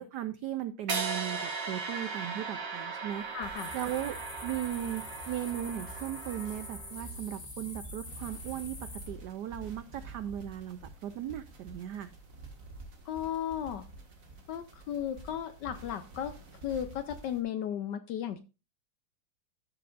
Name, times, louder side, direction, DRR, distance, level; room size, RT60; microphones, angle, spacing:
voice 1, 0.0-4.2 4.4-12.1, right 11 dB, 85° right, 12 dB, 0.9 m, -37 dB
sound 1, 0.9-7.0, right 4 dB, 55° right, 2.3 m, -38 dB
sound 2, 3.1-17.4, right 2 dB, 40° right, 2.0 m, -50 dB
voice 2, 3.3-3.7 13.1-13.8 14.5-16.3 16.6-18.4, left 9 dB, 75° left, 11 dB, 1.0 m, -35 dB
sound 3, 3.6-9.1, left 1 dB, 30° left, 2.0 m, -44 dB
14.5 x 6.8 x 2.4 m, 0.30 s
omnidirectional pair, 2.4 m